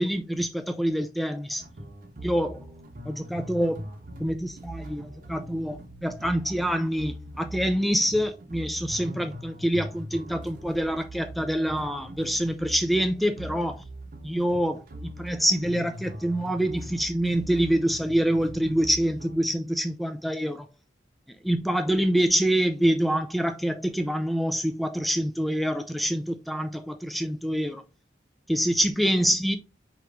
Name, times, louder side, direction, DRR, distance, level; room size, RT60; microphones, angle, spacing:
voice 1, 0.0-1.6 2.2-2.7 3.1-3.9 4.2-13.8 14.2-20.7 21.4-27.8 28.5-29.6, equal, ahead, 0.3 m, -26 dB
sound 1, 1.6-19.5, equal, 45° right, 0.8 m, -41 dB
4.9 x 2.9 x 3.3 m
head